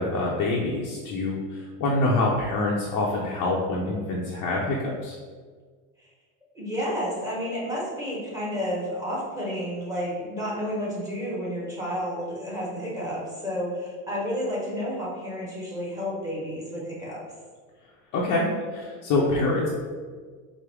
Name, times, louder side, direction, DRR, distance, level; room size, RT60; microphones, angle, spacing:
voice 1, 0.0-5.2 18.1-19.7, left 2 dB, 45° left, -4 dB, 0.7 m, -26 dB
voice 2, 6.5-17.2, equal, 10° right, -6 dB, 1.2 m, -31 dB
4.9 x 2.1 x 3.4 m, 1.5 s
supercardioid pair, 120°, 42 cm